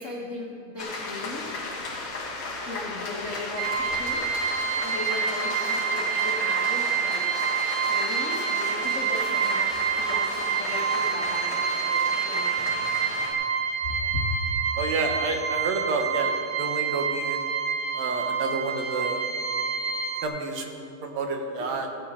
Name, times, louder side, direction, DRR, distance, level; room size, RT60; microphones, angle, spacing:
voice 1, 0.0-1.6 2.6-7.2 7.9-12.5 13.8-14.2, left 2 dB, 75° left, -4 dB, 0.6 m, -37 dB
cathedral applause, 0.8-13.3, left 3 dB, 45° left, 2.2 m, -34 dB
sound 1, 3.6-20.3, right 7 dB, 85° right, 2.3 m, -27 dB
voice 2, 14.8-16.3 16.6-17.4 17.9-19.3 20.2-21.9, right 3 dB, 70° right, 3 dB, 2.1 m, -29 dB
16.0 x 11.5 x 3.6 m, 2.6 s
omnidirectional pair, 3.4 m